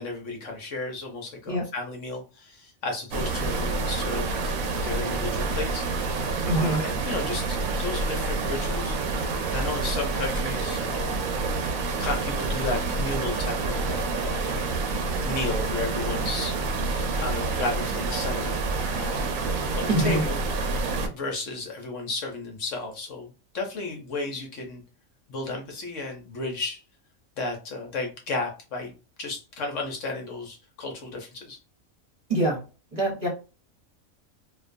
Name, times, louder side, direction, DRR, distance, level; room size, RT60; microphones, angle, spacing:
voice 1, 0.0-4.5 4.8-5.9 6.5-9.0 9.5-11.1 12.0-14.5 15.2-16.6 17.1-18.6 18.9-19.4 19.7-20.4 20.7-20.8 21.1-24.8 25.3-26.8 27.4-28.9 29.2-31.6, left 3 dB, 65° left, 2 dB, 1.0 m, -33 dB
sound 1, 3.1-21.1, right 3 dB, 75° right, 1.0 m, -28 dB
voice 2, 6.4-6.8 19.9-20.2 32.3-32.6 32.9-33.3, right 1 dB, 35° right, -3 dB, 1.0 m, -24 dB
2.5 x 2.3 x 2.4 m, 0.32 s
omnidirectional pair, 1.5 m